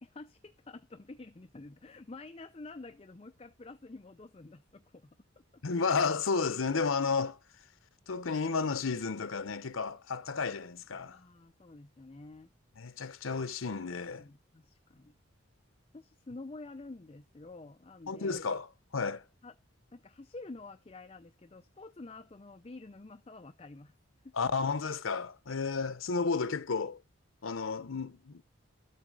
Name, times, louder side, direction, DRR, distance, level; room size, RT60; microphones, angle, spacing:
voice 1, 0.0-5.1 11.1-12.5 14.1-15.1 15.9-18.4 19.4-19.5 19.9-23.9 24.2-24.3, left 3 dB, 30° left, 0.5 m, -49 dB
voice 2, 5.6-7.4 8.1-11.2 12.8-14.3 18.1-19.2 24.3-27.0 27.4-28.4, left 4 dB, 85° left, 0.8 m, -32 dB
13.0 x 7.5 x 4.8 m
head